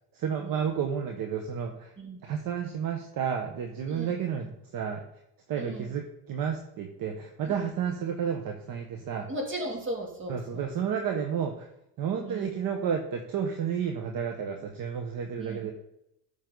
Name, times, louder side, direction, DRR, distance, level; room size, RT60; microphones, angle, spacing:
voice 1, 0.1-1.9 2.2-5.0 5.5-9.3 10.3-11.7 12.0-15.7, right 7 dB, 45° right, 3 dB, 1.4 m, -31 dB
voice 2, 5.6-5.9 9.3-10.7 12.2-12.6 15.4-15.7, right 1 dB, 25° right, 1 dB, 3.0 m, -37 dB
13.5 x 6.4 x 4.0 m, 0.82 s
cardioid pair, 125°, 46 cm